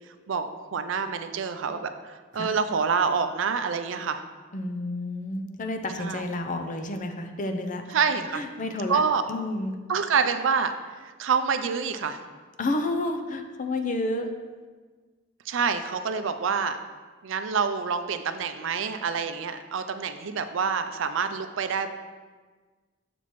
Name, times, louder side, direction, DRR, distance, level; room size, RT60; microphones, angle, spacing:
voice 1, 0.3-4.2 6.0-6.2 7.9-8.4 8.9-9.2 9.9-12.2 15.5-16.8 17.2-21.9, right 5 dB, 70° right, 9 dB, 0.4 m, -27 dB
voice 2, 4.5-7.8 8.3-9.0 9.3-9.8 12.6-14.3, left 2 dB, 40° left, 6 dB, 0.5 m, -30 dB
6.8 x 5.8 x 3.1 m, 1.4 s
head